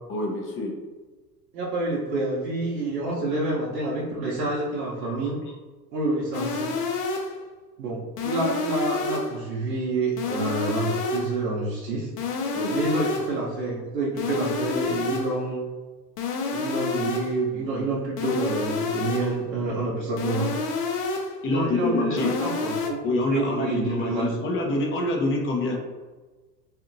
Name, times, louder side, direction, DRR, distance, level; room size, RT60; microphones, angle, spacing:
voice 1, 0.1-0.7 5.0-5.2 5.4-5.6 12.5-12.8 21.4-22.4 23.0-25.8, left 2 dB, 25° left, 1 dB, 0.5 m, -26 dB
voice 2, 1.5-5.4 5.9-6.8 7.8-12.1 12.7-15.6 16.5-20.5 21.5-23.0 23.3-24.3, right 2 dB, 80° right, -6 dB, 0.8 m, -28 dB
sound 1, 6.3-7.4 8.2-9.4 10.2-11.4 12.2-13.4 14.2-15.4 16.2-17.4 18.2-19.4 20.2-21.4 22.2-22.9, left 4 dB, 70° left, 0.7 m, -29 dB
2.8 x 2.5 x 2.5 m, 1.2 s
hypercardioid pair, 90°, 50 cm